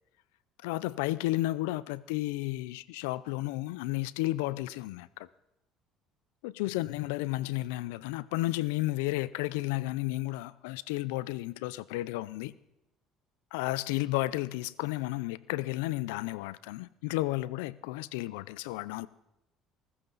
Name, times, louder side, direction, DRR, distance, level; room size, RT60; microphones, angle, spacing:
voice 1, 0.6-5.3 6.4-12.5 13.5-19.1, left 18 dB, 90° left, 0.5 m, -32 dB
22.0 x 14.0 x 4.0 m
supercardioid pair, 85°, 0 cm